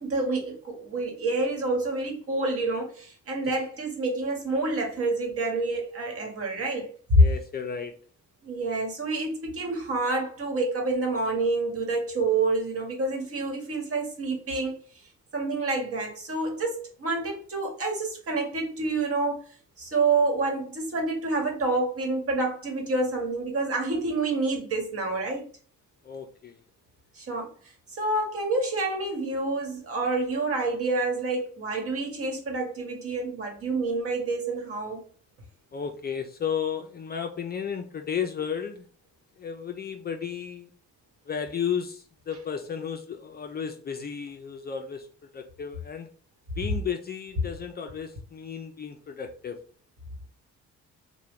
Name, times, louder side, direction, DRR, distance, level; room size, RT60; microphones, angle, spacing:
voice 1, 0.0-7.2 8.4-14.7 15.3-19.4 19.8-25.5 27.2-27.5 27.9-35.0, right 2 dB, 50° right, 1.2 m, -28 dB
voice 2, 7.2-7.9 26.0-26.6 35.7-38.9 39.4-40.7 41.3-46.1 46.6-49.6, left 7 dB, 35° left, 0.4 m, -33 dB
2.9 x 2.2 x 3.5 m
cardioid pair, 90°, 30 cm